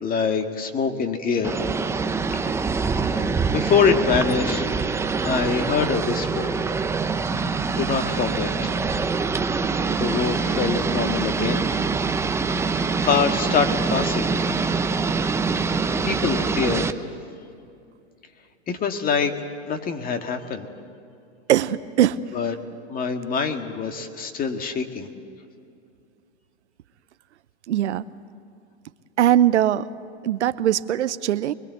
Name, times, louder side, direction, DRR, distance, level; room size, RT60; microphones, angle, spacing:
voice 1, 0.0-1.6 3.1-4.7 5.2-6.5 7.8-8.8 9.5-9.7 10.0-11.7 13.0-14.3 16.0-17.0 18.7-19.3 19.7-20.7 22.3-22.5 22.9-25.1, left 5 dB, 25° left, 6 dB, 1.8 m, -24 dB
sound 1, 1.4-16.9, right 4 dB, 10° right, 0.6 m, -24 dB
voice 2, 21.5-22.2 27.7-28.1 29.2-29.9 30.2-31.5, right 11 dB, 80° right, 14 dB, 0.9 m, -20 dB
24.5 x 22.0 x 8.2 m, 2.5 s
hypercardioid pair, 125°, 34 cm